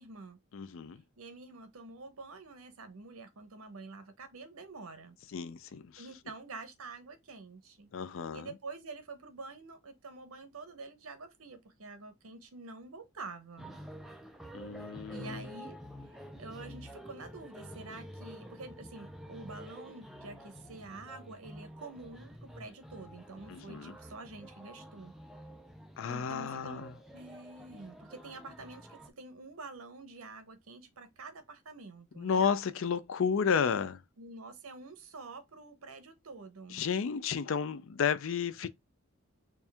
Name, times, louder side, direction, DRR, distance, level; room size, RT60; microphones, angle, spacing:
voice 1, 0.0-0.4 1.2-5.2 6.0-7.9 8.3-13.7 15.1-15.8 16.4-25.1 26.1-26.9 27.1-32.5 34.2-36.8, right 3 dB, 80° right, 0.8 m, -47 dB
voice 2, 0.5-1.0 5.3-5.9 7.9-8.5 14.5-15.4 23.5-23.9 26.0-26.9 32.2-34.0 36.7-38.7, left 6 dB, 65° left, 0.4 m, -32 dB
sound 1, 13.6-29.1, equal, ahead, 0.4 m, -49 dB
4.3 x 2.4 x 3.3 m
head